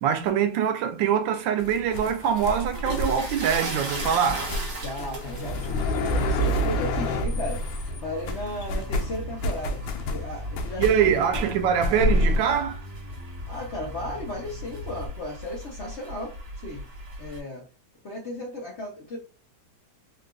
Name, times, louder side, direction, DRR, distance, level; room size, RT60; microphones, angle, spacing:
voice 1, 0.0-4.5 10.8-12.8, right 8 dB, 90° right, 1.4 m, -24 dB
sound 1, 1.6-12.4, equal, 85° left, 1.3 m, -29 dB
sound 2, 2.4-17.4, right 1 dB, 65° right, 1.9 m, -38 dB
voice 2, 4.7-9.8 10.1-11.1 13.5-16.4 16.6-16.8 17.2-17.6 18.0-19.2, left 1 dB, 55° left, 0.8 m, -35 dB
Bass guitar, 5.5-15.1, left 2 dB, 30° right, 1.3 m, -40 dB
3.7 x 2.3 x 2.4 m
omnidirectional pair, 2.0 m